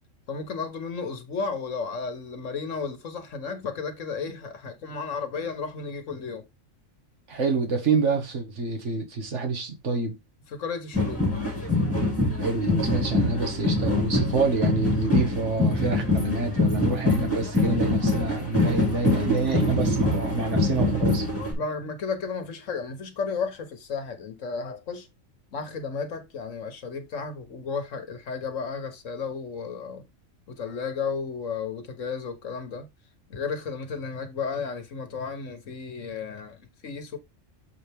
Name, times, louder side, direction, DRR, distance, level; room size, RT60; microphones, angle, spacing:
voice 1, 0.3-6.4 10.5-11.2 21.6-25.1 25.5-30.0 30.5-32.9 33.3-37.2, left 5 dB, 70° left, 1.5 m, -33 dB
voice 2, 7.3-10.2 12.4-21.3, right 3 dB, 65° right, 1.9 m, -27 dB
sound 1, 10.9-21.5, left 2 dB, 10° left, 2.5 m, -24 dB
7.2 x 4.2 x 3.5 m
omnidirectional pair, 1.4 m